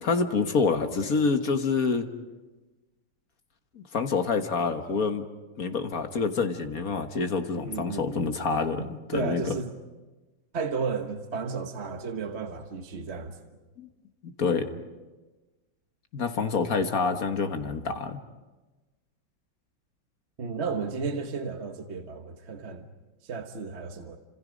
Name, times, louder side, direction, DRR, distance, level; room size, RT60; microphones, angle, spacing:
voice 1, 0.0-2.1 3.8-5.2 5.6-9.4 13.8-13.9 14.4-14.7 16.1-18.2, left 4 dB, 50° left, 6 dB, 1.8 m, -27 dB
voice 2, 7.6-8.3 8.8-9.7 10.5-13.4 20.4-22.9 23.2-24.2, right 5 dB, 40° right, 5 dB, 1.4 m, -33 dB
30.0 x 27.0 x 5.2 m, 1.2 s
omnidirectional pair, 2.0 m